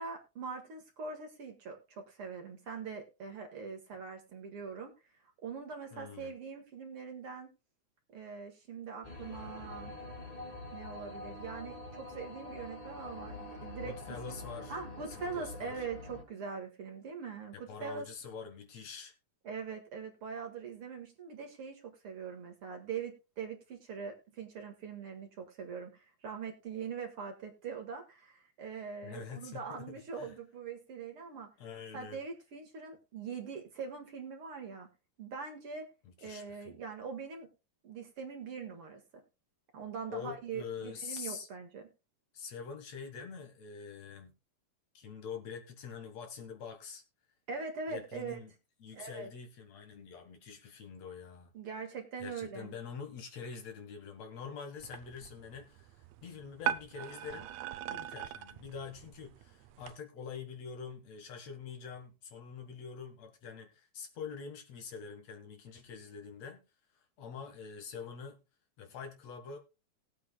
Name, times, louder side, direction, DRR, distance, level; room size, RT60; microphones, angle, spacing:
voice 1, 0.0-4.9 5.4-7.5 8.1-9.9 10.7-14.4 14.7-18.1 19.4-31.5 31.9-34.9 35.2-35.9 36.2-37.5 37.8-39.0 39.7-41.9 47.5-48.4 48.9-49.3 51.5-52.7, right 5 dB, 50° right, 2.4 m, -42 dB
voice 2, 5.9-6.3 13.7-14.7 15.1-15.8 17.5-19.1 29.0-30.3 31.6-32.2 36.2-36.8 40.1-41.5 42.3-44.3 44.9-47.0 47.9-48.5 48.8-51.5 52.2-57.5 57.9-66.6 67.2-68.4 68.8-69.6, left 6 dB, 65° left, 2.6 m, -45 dB
sound 1, 9.0-16.2, left 2 dB, 20° left, 1.2 m, -45 dB
sound 2, 54.8-59.9, right 11 dB, 75° right, 1.9 m, -41 dB
19.5 x 8.3 x 2.2 m
omnidirectional pair, 3.3 m